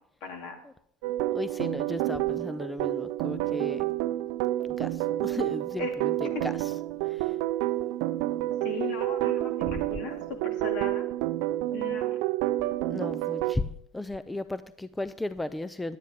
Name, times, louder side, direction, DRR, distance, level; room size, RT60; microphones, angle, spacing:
voice 1, 0.2-0.6 5.8-5.9 6.2-6.4 8.6-10.2 10.4-11.0 11.7-12.2, left 4 dB, 65° left, 4 dB, 2.3 m, -37 dB
sound 1, 1.0-13.6, right 15 dB, 70° right, 0.5 m, -29 dB
voice 2, 1.3-3.8 4.8-6.7 7.0-7.4 12.9-16.0, left 2 dB, 5° left, 14 dB, 0.3 m, -35 dB
10.5 x 9.4 x 3.5 m, 0.69 s
supercardioid pair, 120°, 0 cm